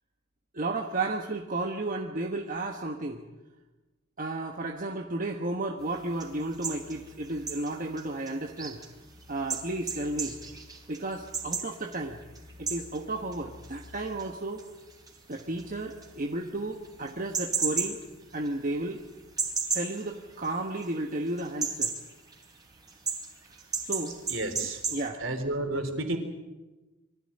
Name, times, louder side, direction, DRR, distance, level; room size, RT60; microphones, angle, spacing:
voice 1, 0.5-3.2 4.2-8.8 9.3-10.4 10.9-12.2 12.6-14.6 15.3-18.0 18.3-19.0 19.7-21.9 23.8-24.2 24.9-25.2, right 2 dB, 40° right, 2 dB, 1.3 m, -33 dB
sound 1, 5.8-21.0 21.3-25.1, right 5 dB, 20° right, 3.9 m, -36 dB
voice 2, 24.3-24.8 25.2-26.2, right 2 dB, 65° right, 5 dB, 3.8 m, -31 dB
23.5 x 15.0 x 9.9 m, 1.1 s
head